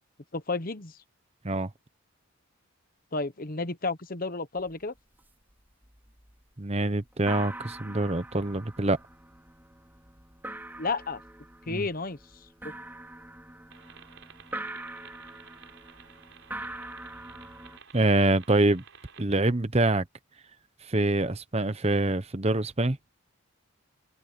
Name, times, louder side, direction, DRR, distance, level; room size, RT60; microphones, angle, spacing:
voice 1, 0.3-1.0 3.1-4.9 10.8-11.2 11.7-12.7, left 3 dB, 40° left, 1.1 m, -32 dB
sound 1, 4.6-4.7 5.0-5.5 5.8-6.4 6.7-6.8 7.1-17.8, right 1 dB, 10° right, 4.8 m, -43 dB
voice 2, 6.6-9.0 11.7-11.8 17.9-18.8 19.2-20.0 20.9-23.0, right 2 dB, 30° right, 1.0 m, -25 dB
sound 2, 13.7-19.2, right 7 dB, 60° right, 4.6 m, -53 dB
head